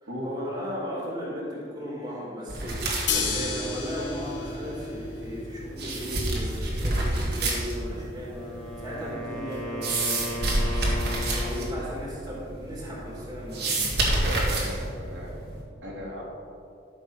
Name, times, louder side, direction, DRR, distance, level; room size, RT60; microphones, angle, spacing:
voice 1, 0.0-10.5 11.1-13.9, equal, 20° right, -4 dB, 2.4 m, -36 dB
sound 1, 2.5-15.6, right 2 dB, 55° right, 2.0 m, -30 dB
sound 2, 3.1-9.1, left 4 dB, 65° left, 1.7 m, -34 dB
Wind instrument woodwind instrument, 8.1-12.0, left 1 dB, 5° left, 1.7 m, -36 dB
voice 2, 14.1-15.3 15.8-16.2, equal, 75° right, -4 dB, 2.5 m, -36 dB
13.0 x 6.3 x 5.6 m, 2.4 s
head